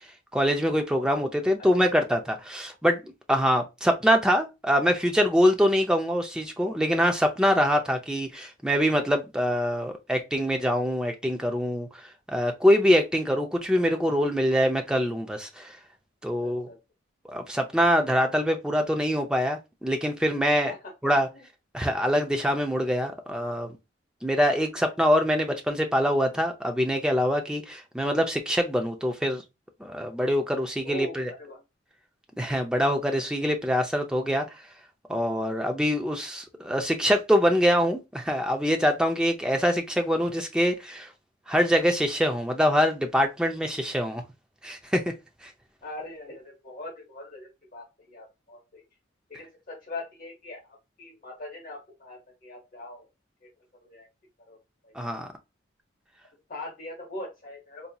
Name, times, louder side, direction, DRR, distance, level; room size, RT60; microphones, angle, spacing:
voice 1, 0.3-11.9 12.3-15.7 16.2-16.7 17.3-20.7 21.0-21.3 21.7-23.7 24.2-29.4 29.8-31.3 32.4-34.4 35.1-41.1 41.5-44.2 44.6-45.0 45.4-45.5 54.9-55.3, equal, 5° right, 0.5 m, -24 dB
voice 2, 16.4-16.8 20.6-20.9 21.3-21.4 30.8-31.6 45.8-48.8 49.3-53.1 53.8-54.1 54.5-54.6 54.8-55.2 56.5-57.9, left 2 dB, 45° left, 1.0 m, -41 dB
4.1 x 2.7 x 2.3 m
head